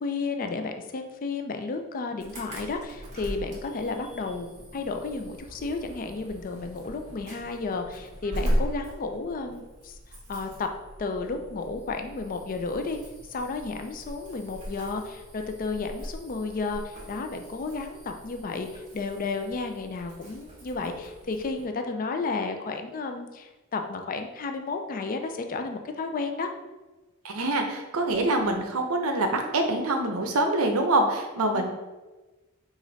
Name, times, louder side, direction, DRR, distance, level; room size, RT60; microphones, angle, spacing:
voice 1, 0.0-4.5 4.7-9.9 10.3-10.7 11.0-13.0 13.3-26.5 31.5-31.7, left 3 dB, 40° left, 6 dB, 0.4 m, -32 dB
Insect / Alarm, 2.2-21.6, equal, 30° right, 1.3 m, -38 dB
voice 2, 27.2-31.7, right 2 dB, 70° right, 4 dB, 0.7 m, -25 dB
4.9 x 2.5 x 4.0 m, 1.2 s
head